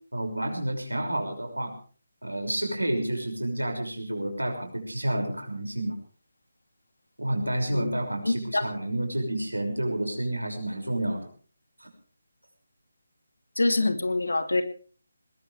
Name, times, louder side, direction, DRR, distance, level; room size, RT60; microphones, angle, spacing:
voice 1, 0.1-1.7 2.2-5.9 7.2-11.3 11.8-11.9, right 1 dB, 85° right, 4 dB, 6.1 m, -30 dB
voice 2, 8.2-8.6 13.6-14.6, left 2 dB, 70° left, 9 dB, 2.6 m, -25 dB
20.5 x 20.0 x 3.4 m, 0.41 s
figure-of-eight pair, 150°, 0 cm